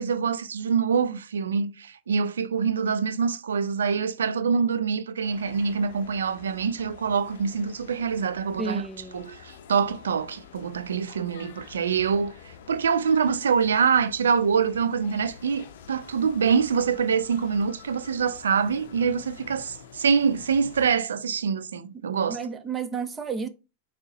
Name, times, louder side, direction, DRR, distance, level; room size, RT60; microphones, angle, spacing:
voice 1, 0.0-8.8 9.1-22.4, right 6 dB, 85° right, 0.3 m, -25 dB
sound 1, 5.2-21.0, left 7 dB, 70° left, 0.5 m, -48 dB
voice 2, 8.6-9.3 22.3-23.5, right 5 dB, 20° right, 0.6 m, -32 dB
3.9 x 2.0 x 3.7 m
hypercardioid pair, 105°, 0 cm